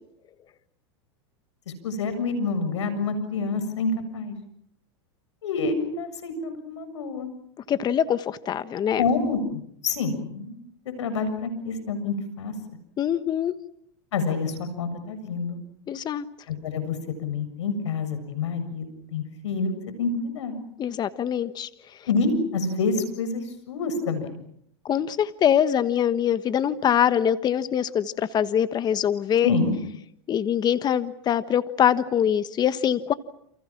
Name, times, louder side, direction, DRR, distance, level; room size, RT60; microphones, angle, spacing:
voice 1, 1.8-4.3 5.4-7.3 9.0-10.6 11.0-12.5 14.1-15.6 16.5-19.7 20.0-20.6 22.1-24.4 29.4-29.8, left 4 dB, 85° left, 10 dB, 7.3 m, -27 dB
voice 2, 7.7-9.0 13.0-13.5 15.9-16.2 20.8-21.7 24.8-29.5 30.3-33.1, left 9 dB, 30° left, 13 dB, 1.3 m, -23 dB
29.0 x 28.5 x 6.0 m, 0.70 s
hypercardioid pair, 120°, 15 cm